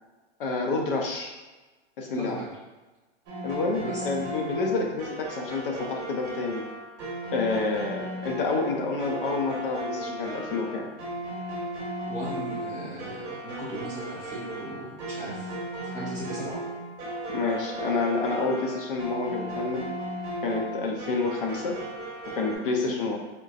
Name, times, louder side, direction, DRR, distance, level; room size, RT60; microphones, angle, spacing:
voice 1, 0.4-1.3 2.0-2.4 3.4-6.6 7.3-10.9 17.3-19.9 20.4-21.8 22.3-23.2, left 3 dB, 50° left, 1 dB, 0.6 m, -28 dB
voice 2, 2.1-2.6 3.8-4.2 4.6-4.8 7.5-7.8 12.1-15.5 15.8-16.7, right 1 dB, 10° left, -9 dB, 0.5 m, -37 dB
sound 1, 3.3-22.6, right 1 dB, 35° right, 1.3 m, -35 dB
4.4 x 2.6 x 2.4 m, 1.2 s
supercardioid pair, 170°, 36 cm